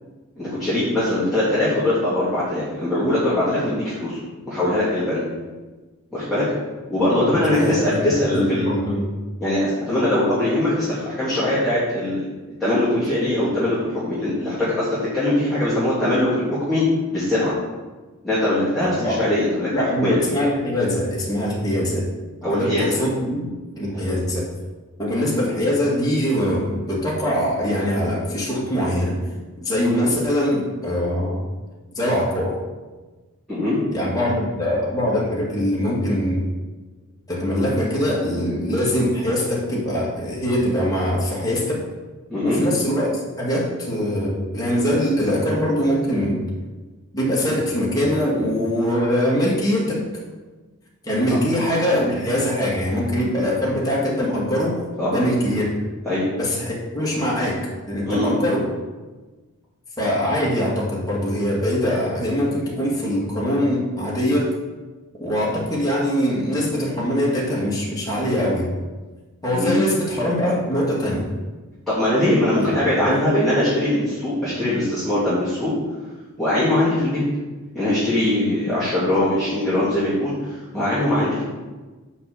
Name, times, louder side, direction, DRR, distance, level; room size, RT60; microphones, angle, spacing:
voice 1, 0.4-4.2 4.5-5.2 6.1-6.4 6.9-8.6 9.4-12.2 12.6-16.8 17.1-17.5 18.2-20.1 22.4-22.8 33.5-33.8 42.3-42.6 55.0-55.2 56.0-56.3 58.1-58.3 69.5-69.8 71.9-75.7 76.4-77.2 77.7-81.4, left 1 dB, ahead, -13 dB, 2.7 m, -21 dB
voice 2, 7.1-9.1 18.8-19.3 19.7-22.1 22.5-24.5 25.0-29.2 29.6-31.4 32.0-32.5 33.9-36.5 37.3-41.8 42.4-43.1 43.4-46.5 47.1-50.0 51.0-54.8 55.1-55.7 56.4-58.7 60.0-64.6 65.2-68.7 69.4-71.3 72.6-72.7 73.0-73.3, equal, 15° left, -5 dB, 1.9 m, -22 dB
5.9 x 5.6 x 7.0 m, 1.3 s
head